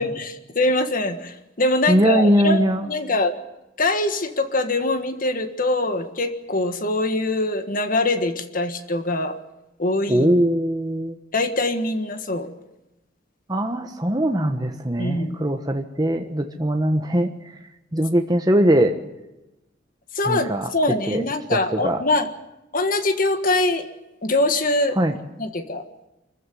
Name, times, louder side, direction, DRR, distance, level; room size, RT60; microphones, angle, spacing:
voice 1, 0.0-3.3 3.8-9.3 9.8-10.3 11.3-12.5 15.0-15.4 20.1-22.3 22.7-23.9 24.2-25.0 25.4-25.8, left 2 dB, 45° left, 9 dB, 1.6 m, -23 dB
voice 2, 1.9-2.9 10.1-11.1 13.5-17.3 17.9-19.0 20.2-20.7 21.1-21.2 21.5-22.0 25.0-25.2, right 1 dB, 20° right, 4 dB, 1.3 m, -21 dB
25.5 x 14.5 x 9.4 m, 0.97 s
head